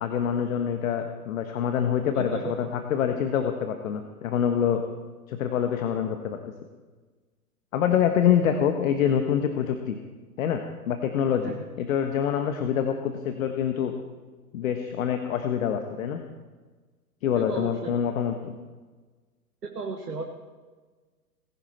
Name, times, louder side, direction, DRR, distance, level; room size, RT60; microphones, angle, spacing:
voice 1, 0.0-4.8 5.3-6.4 7.7-10.0 10.4-13.9 14.5-16.2 17.2-18.5, left 8 dB, 55° left, 6 dB, 1.5 m, -26 dB
voice 2, 2.1-2.7 11.4-11.6 17.5-18.0 19.6-20.2, right 4 dB, 85° right, 2 dB, 1.6 m, -34 dB
19.5 x 16.0 x 4.4 m, 1.4 s
figure-of-eight pair, 105°, 47 cm